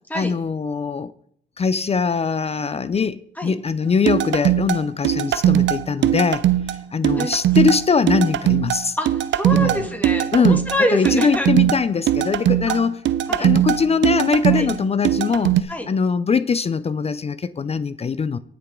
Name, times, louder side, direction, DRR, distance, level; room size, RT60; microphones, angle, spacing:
voice 1, 0.1-1.1 1.6-6.5 6.9-9.0 9.5-9.8 10.3-10.6 10.9-13.0 13.3-18.4, left 5 dB, 30° left, 0.5 m, -22 dB
sound 1, 4.1-15.6, right 12 dB, 70° right, 0.7 m, -20 dB
voice 2, 9.0-11.5 12.7-12.8 13.3-13.5 14.5-14.7 15.7-15.9, equal, 10° left, 2.3 m, -26 dB
18.5 x 6.8 x 3.7 m
cardioid pair, 90°, 20 cm